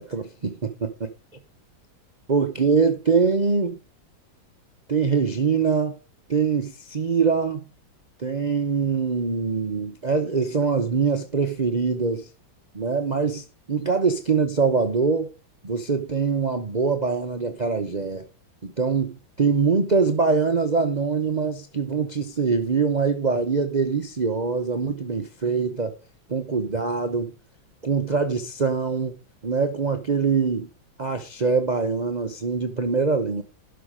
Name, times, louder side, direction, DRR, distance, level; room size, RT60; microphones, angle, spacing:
voice 1, 0.0-0.9 2.3-3.8 4.9-6.0 6.3-7.7 8.2-12.3 12.7-15.3 15.6-18.3 18.6-25.9 26.3-27.3 27.8-30.7 31.0-33.4, right 5 dB, 65° right, 0.4 m, -23 dB
11.5 x 5.8 x 5.0 m
omnidirectional pair, 2.2 m